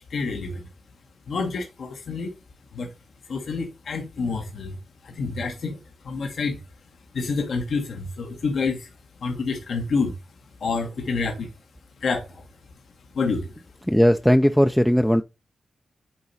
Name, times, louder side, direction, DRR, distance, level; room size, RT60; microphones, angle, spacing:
voice 1, 0.1-0.6 1.3-2.3 2.7-2.9 3.3-4.8 5.0-5.8 6.0-6.6 7.1-8.9 9.2-10.2 10.6-11.5 12.0-12.5 13.1-13.6, left 4 dB, 75° left, 1.2 m, -28 dB
voice 2, 13.9-15.2, equal, ahead, 0.4 m, -18 dB
8.7 x 3.0 x 4.0 m
cardioid pair, 60°, 0 cm